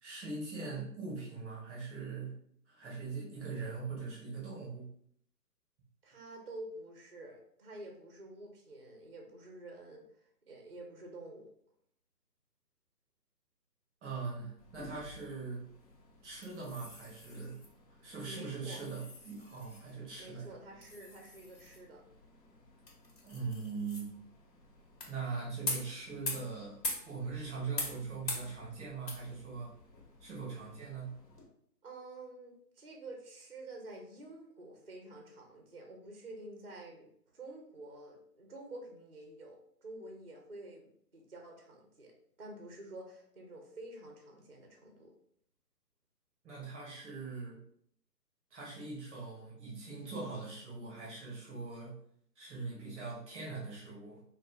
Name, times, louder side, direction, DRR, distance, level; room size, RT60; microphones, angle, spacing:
voice 1, 0.0-2.4 2.7-4.9 14.0-15.6 16.2-17.6 18.0-20.5 23.2-24.1 25.1-26.8 27.0-29.7 30.2-31.2 46.4-47.6 48.5-52.0 52.4-54.2, right 4 dB, 5° right, -5 dB, 0.7 m, -41 dB
voice 2, 6.0-11.5 18.2-18.8 20.1-22.0 31.8-37.1 37.3-45.1, right 2 dB, 40° right, 2 dB, 0.4 m, -49 dB
sound 1, 14.6-31.4, left 2 dB, 80° left, 1.3 m, -45 dB
2.5 x 2.5 x 3.4 m, 0.67 s
figure-of-eight pair, 150°, 49 cm